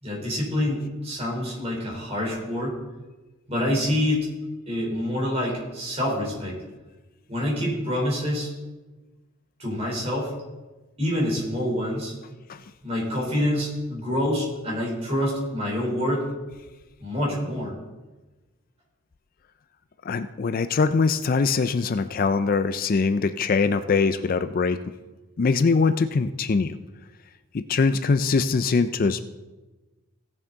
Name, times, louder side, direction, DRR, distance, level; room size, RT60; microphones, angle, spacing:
voice 1, 0.0-2.7 3.5-4.3 4.7-6.6 7.3-8.5 9.6-10.3 11.0-12.1 12.8-16.3 17.0-17.7, left 1 dB, 30° right, -3 dB, 3.8 m, -26 dB
voice 2, 20.1-24.8 25.4-26.7 27.5-29.2, left 4 dB, 45° left, 11 dB, 0.4 m, -22 dB
17.0 x 7.2 x 3.9 m, 1.2 s
head